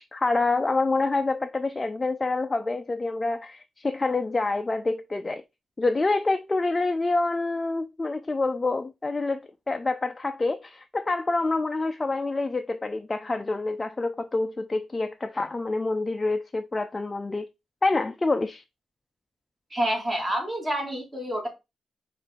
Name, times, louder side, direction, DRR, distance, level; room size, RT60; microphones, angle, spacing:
voice 1, 0.0-5.4 5.8-17.5 17.8-18.6, left 3 dB, 25° left, 0.3 m, -27 dB
voice 2, 19.7-21.5, right 1 dB, 20° right, 1.8 m, -28 dB
5.4 x 2.5 x 3.3 m
cardioid pair, 95°, 0 cm